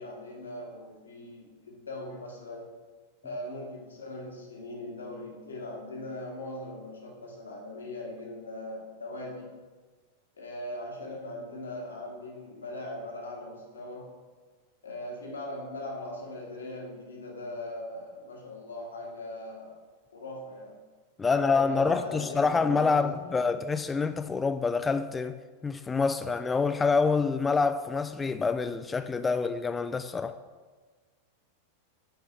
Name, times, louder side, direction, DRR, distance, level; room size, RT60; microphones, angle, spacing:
voice 1, 0.0-2.8 3.2-9.6 10.4-14.2 14.8-19.8 20.1-20.9 21.3-23.5, left 1 dB, 70° left, 1.8 m, -40 dB
voice 2, 21.2-25.4 25.6-30.4, left 4 dB, 15° left, 0.3 m, -26 dB
9.2 x 4.7 x 4.4 m
figure-of-eight pair, 90°, 0 cm